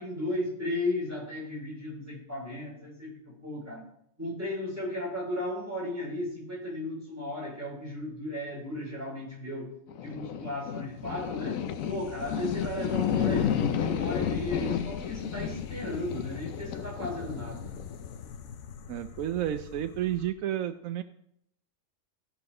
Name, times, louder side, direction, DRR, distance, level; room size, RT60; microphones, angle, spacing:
voice 1, 0.0-3.8 4.2-9.7 10.0-11.6 11.9-17.8, left 1 dB, 10° right, -5 dB, 5.1 m, -35 dB
sound 1, 9.9-20.3, left 8 dB, 80° left, 1.2 m, -32 dB
voice 2, 18.9-21.0, right 11 dB, 80° right, 10 dB, 1.0 m, -31 dB
15.5 x 5.9 x 5.3 m, 0.73 s
omnidirectional pair, 1.4 m